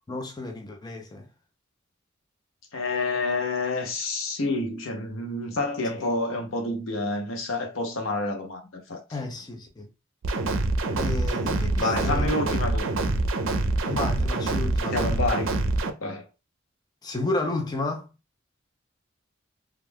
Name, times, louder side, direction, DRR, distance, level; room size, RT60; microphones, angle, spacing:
voice 1, 0.1-1.3 9.1-9.9 10.9-12.4 13.9-15.2 17.0-18.1, left 2 dB, 20° left, 0.4 m, -32 dB
voice 2, 2.7-9.0 11.8-12.9 14.9-15.5 16.0-16.3, left 2 dB, 85° left, 0.7 m, -28 dB
sound 1, 10.2-15.9, right 2 dB, 85° right, 0.4 m, -25 dB
2.3 x 2.2 x 3.2 m
head